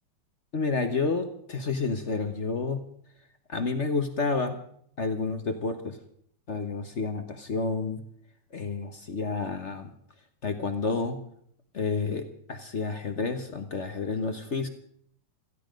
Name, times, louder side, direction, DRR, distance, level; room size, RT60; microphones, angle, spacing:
voice 1, 0.5-2.8 3.5-4.6 5.0-6.0 6.5-8.0 8.5-9.9 10.4-11.2 11.7-14.7, left 4 dB, 45° left, 8 dB, 1.0 m, -30 dB
17.0 x 13.5 x 5.2 m, 0.66 s
omnidirectional pair, 2.4 m